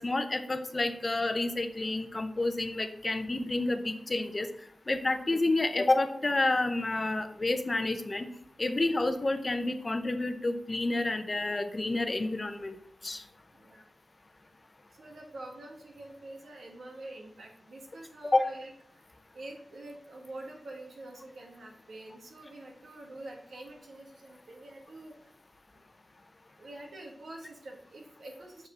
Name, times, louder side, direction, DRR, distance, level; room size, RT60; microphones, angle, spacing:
voice 1, 0.0-4.5 4.9-8.3 8.6-12.8 13.0-13.2 18.3-18.4, left 2 dB, 30° left, 8 dB, 0.6 m, -29 dB
voice 2, 13.5-13.9 14.9-18.7 19.3-25.3 26.6-28.7, right 2 dB, 90° right, 0 dB, 1.7 m, -46 dB
6.3 x 5.2 x 4.0 m, 0.67 s
wide cardioid pair, 105°, 0 cm